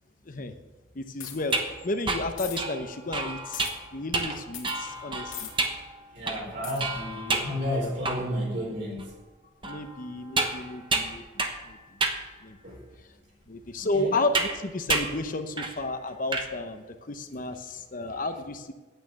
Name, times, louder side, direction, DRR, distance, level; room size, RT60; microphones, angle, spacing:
voice 1, 0.9-5.5 9.6-11.2 11.6-11.8 12.4-12.6 13.5-18.7, left 2 dB, 45° left, 7 dB, 0.8 m, -32 dB
sound 1, 1.2-1.5 2.4-2.6 3.5-3.7 4.5-4.8 5.3-5.5 6.6-6.8, left 10 dB, 90° left, 2.3 m, -38 dB
sound 2, 1.4-8.5 9.0-9.1 9.6-11.7 12.0-12.3 12.9-13.0 14.3-14.6 14.9-15.2 15.6-15.8 16.1-16.5, right 3 dB, 25° right, 1.1 m, -30 dB
voice 2, 6.1-9.1 12.6-12.8 13.8-14.2, left 1 dB, 60° right, -2 dB, 3.9 m, -32 dB
9.1 x 9.0 x 7.1 m, 1.2 s
head